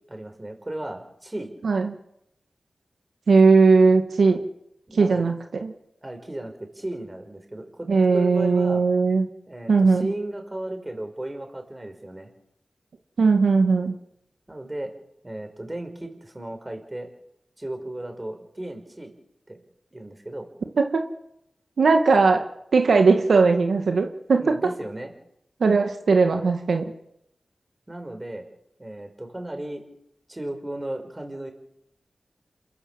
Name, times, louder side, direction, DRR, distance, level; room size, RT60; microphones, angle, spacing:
voice 1, 0.1-1.5 4.9-5.3 6.0-7.9 8.1-8.8 9.5-12.3 14.5-14.9 15.2-17.1 17.6-19.1 19.5-19.6 19.9-20.5 24.4-25.1 27.9-28.5 28.8-29.8 30.3-31.5, right 1 dB, 20° right, 5 dB, 5.3 m, -35 dB
voice 2, 1.6-1.9 3.3-4.4 4.9-5.7 7.9-9.3 9.7-10.0 13.2-13.9 20.8-21.0 21.8-22.4 22.7-24.4 25.6-26.9, right 4 dB, 85° right, 4 dB, 1.9 m, -18 dB
28.0 x 14.0 x 7.5 m, 0.78 s
wide cardioid pair, 60°, 0 cm